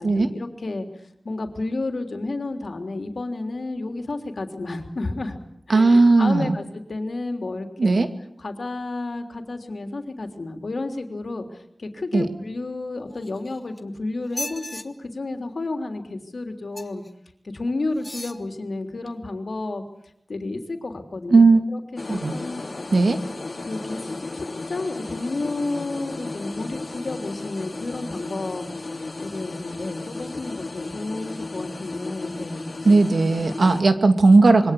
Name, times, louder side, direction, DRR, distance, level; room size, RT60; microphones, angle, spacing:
voice 1, 0.0-5.4 5.7-8.1 8.4-17.0 17.4-19.8 20.3-21.4 21.7-22.6 23.6-28.7 29.2-32.9 33.4-33.5, left 2 dB, 75° left, 6 dB, 3.4 m, -31 dB
voice 2, 5.7-6.6 7.8-8.1 12.1-12.3 21.3-21.6 22.1-22.3 22.9-23.2 32.8-34.7, right 3 dB, 80° right, 8 dB, 2.4 m, -16 dB
sound 1, 13.1-13.8 14.2-14.8 16.7-17.1 17.9-18.4 19.1-19.2, left 1 dB, 20° left, 2.0 m, -36 dB
sound 2, 22.0-33.8, left 2 dB, 55° left, 3.0 m, -34 dB
26.5 x 23.0 x 8.4 m, 0.74 s
wide cardioid pair, 70°, 0 cm